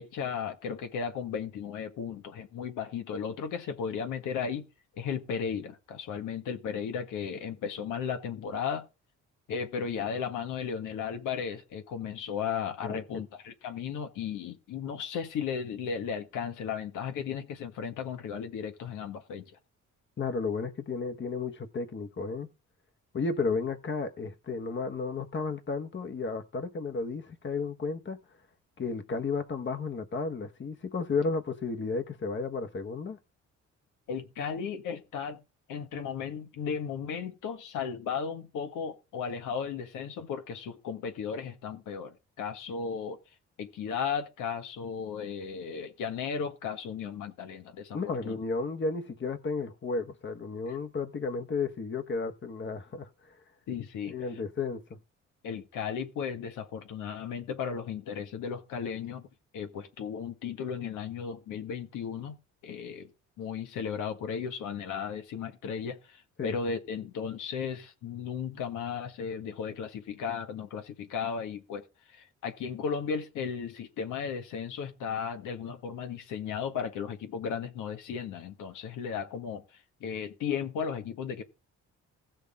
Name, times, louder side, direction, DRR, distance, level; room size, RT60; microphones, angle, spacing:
voice 1, 0.0-4.6 5.0-8.8 9.5-19.4 34.1-35.4 35.7-43.2 43.6-48.3 53.7-54.1 55.4-59.3 59.5-62.4 62.6-63.1 63.4-71.8 72.1-79.6 80.0-81.4, left 6 dB, 85° left, 1.7 m, -35 dB
voice 2, 20.2-22.5 23.1-28.2 28.8-33.2 47.9-53.4 54.0-55.0 66.4-66.6, left 4 dB, 40° left, 1.4 m, -33 dB
16.0 x 6.4 x 3.7 m
cardioid pair, 90°, 30 cm